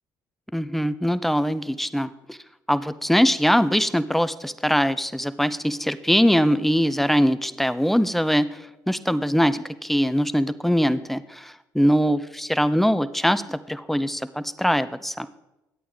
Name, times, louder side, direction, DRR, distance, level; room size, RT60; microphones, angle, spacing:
voice 1, 0.5-2.4 2.7-15.3, equal, ahead, 13 dB, 0.6 m, -22 dB
10.5 x 8.5 x 3.5 m, 0.96 s
hypercardioid pair, 55°, 8 cm